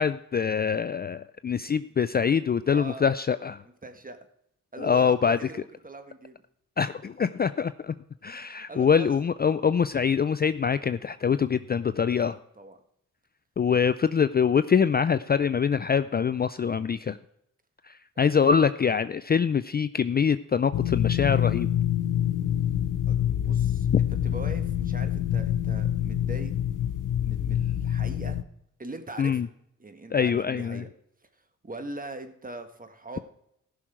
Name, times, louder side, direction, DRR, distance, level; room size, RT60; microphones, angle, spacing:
voice 1, 0.0-3.6 4.8-5.4 6.8-8.0 8.2-12.4 13.6-17.2 17.9-21.7 29.2-29.5 30.1-30.8, left 6 dB, 30° left, 13 dB, 0.4 m, -24 dB
voice 2, 2.7-3.1 3.8-4.2 4.7-6.4 8.7-9.1 11.3-11.5 12.3-12.8 18.2-18.5 23.1-23.9 24.2-26.5 27.2-28.4 28.8-29.5 29.8-30.9 31.6-33.2, right 2 dB, 25° right, 7 dB, 1.6 m, -41 dB
sound 1, 20.7-28.4, left 10 dB, 80° left, 0.6 m, -26 dB
15.0 x 6.3 x 4.5 m, 0.74 s
cardioid pair, 60°, 31 cm